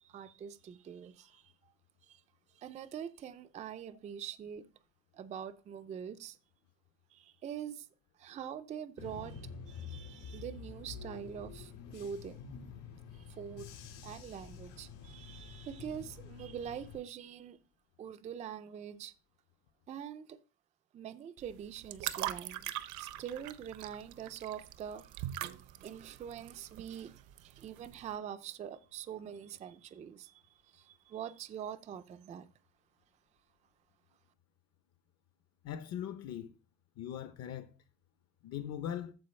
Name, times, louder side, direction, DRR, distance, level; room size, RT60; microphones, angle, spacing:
voice 1, 0.0-1.5 2.0-2.2 2.5-4.7 5.1-6.4 7.1-7.9 8.2-12.4 13.1-13.7 14.0-17.6 18.0-19.1 19.9-20.4 20.9-32.5, right 8 dB, 20° right, 0.3 m, -44 dB
Bus / Engine, 9.0-17.0, left 6 dB, 75° left, 4.1 m, -48 dB
sound 1, 21.4-28.1, right 13 dB, 60° right, 0.6 m, -42 dB
voice 2, 35.6-36.5 37.0-37.7 38.4-39.1, left 10 dB, 50° left, 0.7 m, -40 dB
14.0 x 4.7 x 3.2 m
cardioid pair, 175°, 33 cm